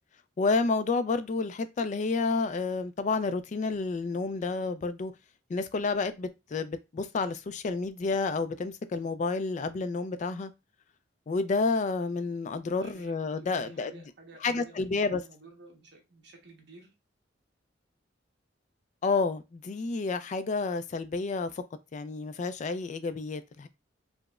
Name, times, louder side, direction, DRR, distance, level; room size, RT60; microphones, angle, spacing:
voice 1, 0.4-5.1 5.5-10.5 11.3-13.9 14.4-15.2 19.0-21.6 21.9-23.7, left 4 dB, 40° left, 0.3 m, -30 dB
voice 2, 12.8-16.9, right 2 dB, 65° right, 1.0 m, -53 dB
4.8 x 2.0 x 2.3 m
head